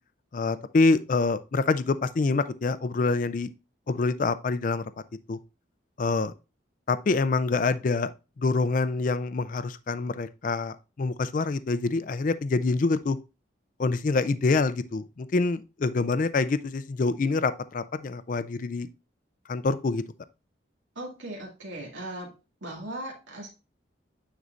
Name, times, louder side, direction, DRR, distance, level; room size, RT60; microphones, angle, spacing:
voice 1, 0.3-3.5 3.9-4.8 5.3-5.4 6.0-6.3 6.9-8.1 8.4-13.2 13.8-18.9 19.5-20.0, left 3 dB, 45° left, 0.4 m, -26 dB
voice 2, 21.0-22.3 22.6-23.5, right 1 dB, 80° right, 2.0 m, -38 dB
9.4 x 4.1 x 2.5 m
head